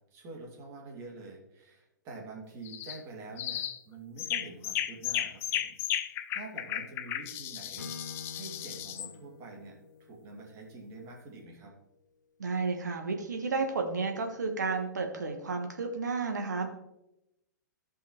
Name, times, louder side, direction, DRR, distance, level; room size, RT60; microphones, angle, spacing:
voice 1, 0.1-7.9 8.3-11.7, right 3 dB, 30° right, -1 dB, 2.3 m, -47 dB
sound 1, 2.6-3.0 3.4-3.8 4.2-9.1, left 11 dB, 25° left, 0.4 m, -35 dB
Acoustic guitar / Strum, 7.8-11.7, left 4 dB, 75° left, 0.8 m, -49 dB
voice 2, 12.4-16.7, right 4 dB, 65° right, 4 dB, 1.4 m, -32 dB
14.0 x 5.6 x 3.1 m, 0.89 s
figure-of-eight pair, 110°, 10 cm